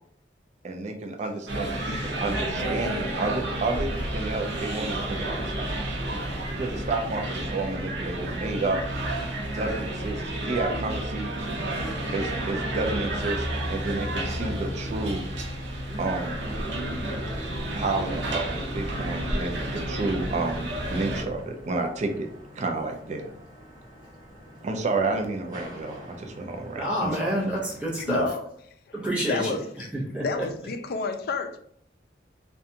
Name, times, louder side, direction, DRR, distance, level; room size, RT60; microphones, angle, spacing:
voice 1, 0.6-5.9 6.5-8.8 9.5-11.3 12.1-15.3 16.0-16.4 17.7-22.3 22.6-23.3 24.6-27.4, right 3 dB, 40° right, 0.3 m, -30 dB
sound 1, 1.5-21.2, right 1 dB, 85° right, 0.6 m, -31 dB
sound 2, 9.1-28.3, equal, 20° right, 1.1 m, -48 dB
voice 2, 26.8-28.2 28.9-29.5 29.9-30.5, equal, 5° right, 0.8 m, -28 dB
voice 3, 28.1-28.4 28.9-29.9 30.2-31.6, left 4 dB, 55° left, 0.3 m, -30 dB
2.5 x 2.2 x 2.7 m
head